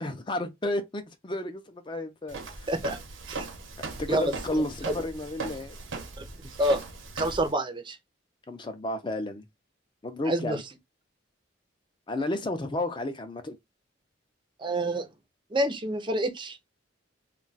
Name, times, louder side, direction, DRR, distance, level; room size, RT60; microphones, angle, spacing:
voice 1, 0.0-2.6 4.0-5.8 8.5-9.4 10.0-10.6 12.1-13.6, left 1 dB, 25° left, 0.5 m, -32 dB
Walk footsteps, 2.3-7.5, right 3 dB, 75° right, 0.8 m, -38 dB
voice 2, 2.7-3.0 3.3-3.5 4.1-4.3 4.9-5.0 6.2-6.3 6.6-6.8 7.2-8.0 10.3-10.6 14.6-15.1 15.5-16.6, right 1 dB, 25° right, 0.5 m, -27 dB
2.3 x 2.2 x 3.9 m
head